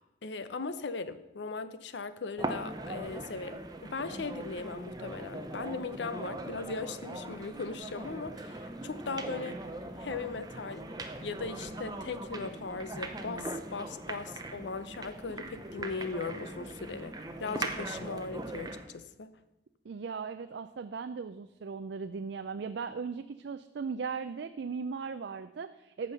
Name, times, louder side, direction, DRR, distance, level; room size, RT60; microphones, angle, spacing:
voice 1, 0.0-9.6 10.0-10.9 11.2-17.1 17.4-19.3, left 4 dB, 70° left, 13 dB, 0.6 m, -38 dB
sound 1, 2.4-18.9, right 2 dB, 20° right, 0.7 m, -40 dB
voice 2, 19.8-26.1, right 5 dB, 65° right, 10 dB, 0.4 m, -38 dB
14.0 x 5.4 x 5.6 m, 0.99 s
head